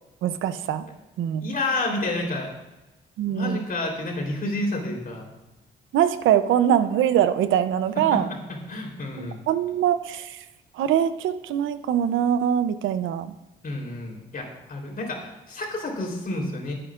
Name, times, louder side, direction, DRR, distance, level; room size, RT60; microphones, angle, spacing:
voice 1, 0.2-0.8 1.2-1.5 3.2-3.6 5.9-8.3 9.2-10.4 10.8-13.3, right 10 dB, 80° right, 12 dB, 0.7 m, -23 dB
voice 2, 1.4-2.5 3.3-5.3 8.0-9.4 13.6-16.7, left 2 dB, 45° left, 0 dB, 3.7 m, -30 dB
24.5 x 9.0 x 2.5 m, 0.99 s
cardioid pair, 90°, 20 cm